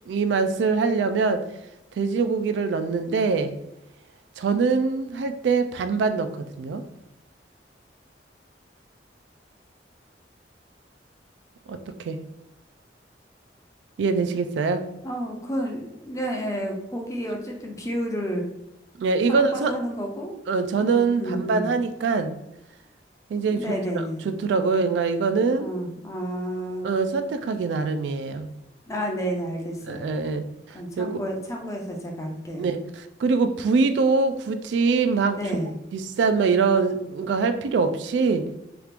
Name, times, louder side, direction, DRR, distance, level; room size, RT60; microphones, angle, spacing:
voice 1, 0.1-1.4 2.0-3.6 4.4-6.8 11.7-12.2 14.0-14.8 19.0-19.8 20.5-22.3 23.3-23.6 24.2-25.7 26.8-28.5 29.9-31.2 32.6-35.4 35.9-38.5, right 4 dB, 75° right, 10 dB, 0.3 m, -23 dB
voice 2, 15.0-18.5 19.3-20.4 20.8-21.7 23.5-24.2 25.6-26.9 28.9-30.1 30.7-32.7 35.4-35.7, equal, 15° left, 1 dB, 0.5 m, -31 dB
3.0 x 2.4 x 3.3 m, 0.89 s
head